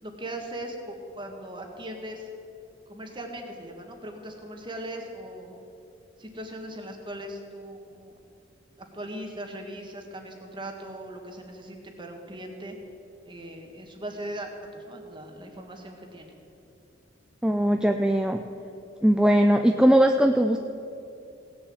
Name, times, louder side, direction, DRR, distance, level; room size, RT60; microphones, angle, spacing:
voice 1, 0.0-2.3 2.9-5.5 6.2-8.1 8.9-12.7 13.2-16.3, right 1 dB, 25° right, 3 dB, 1.6 m, -39 dB
voice 2, 17.4-18.4 19.0-20.6, equal, 5° right, 5 dB, 0.4 m, -20 dB
17.0 x 7.0 x 7.8 m, 2.7 s
head